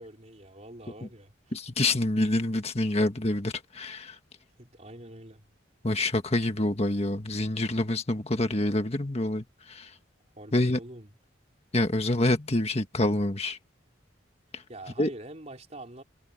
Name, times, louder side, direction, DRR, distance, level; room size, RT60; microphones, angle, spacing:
voice 1, 0.0-1.5 4.6-5.5 10.4-11.1 14.7-16.0, right 1 dB, 35° right, 3.9 m, -45 dB
voice 2, 1.5-4.2 5.8-9.9 10.5-10.8 11.7-13.6 14.5-14.6 15.0-15.1, left 1 dB, 35° left, 1.6 m, -27 dB
head